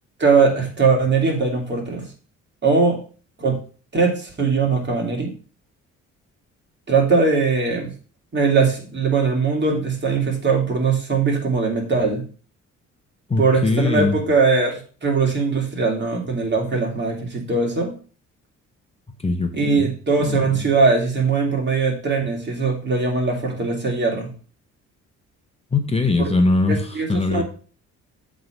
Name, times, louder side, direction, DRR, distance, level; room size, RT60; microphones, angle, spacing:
voice 1, 0.2-2.1 2.6-3.0 3.4-3.6 3.9-5.3 6.9-7.9 8.3-12.2 13.4-17.9 19.5-24.3 26.2-26.3 26.7-27.4, right 4 dB, 35° right, 0 dB, 3.0 m, -20 dB
voice 2, 13.3-14.2 19.2-19.9 20.2-20.7 25.7-27.4, left 3 dB, 20° left, 5 dB, 1.2 m, -21 dB
7.8 x 3.8 x 6.5 m, 0.38 s
cardioid pair, 90°, 30 cm